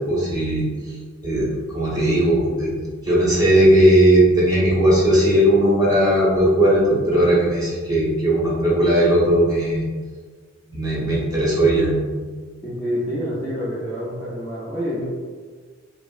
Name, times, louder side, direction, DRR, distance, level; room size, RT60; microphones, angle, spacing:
voice 1, 0.1-0.7 1.2-2.7 3.0-9.8 10.7-12.2, right 1 dB, 20° right, -8 dB, 0.9 m, -17 dB
voice 2, 12.6-15.1, equal, 5° left, -11 dB, 0.5 m, -27 dB
3.5 x 2.0 x 2.4 m, 1.5 s
head